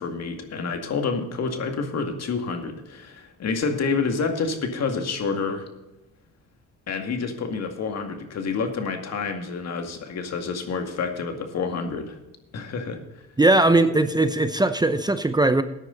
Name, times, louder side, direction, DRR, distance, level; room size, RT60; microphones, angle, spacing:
voice 1, 0.0-5.7 6.9-12.2 12.5-13.3, left 4 dB, 60° left, 5 dB, 2.2 m, -28 dB
voice 2, 13.4-15.6, right 2 dB, 15° right, 11 dB, 0.7 m, -19 dB
14.0 x 9.8 x 4.0 m, 0.97 s
cardioid pair, 90°, 30 cm